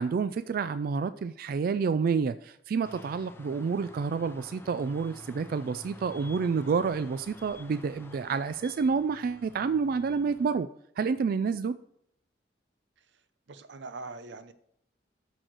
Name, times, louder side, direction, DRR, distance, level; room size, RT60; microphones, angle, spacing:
voice 1, 0.0-10.7 11.0-11.8, right 5 dB, 55° right, 13 dB, 0.3 m, -29 dB
sound 1, 2.8-10.5, left 1 dB, 15° left, 0.6 m, -50 dB
voice 2, 13.5-14.5, right 3 dB, 90° right, 11 dB, 0.7 m, -42 dB
6.5 x 6.3 x 6.0 m, 0.73 s
head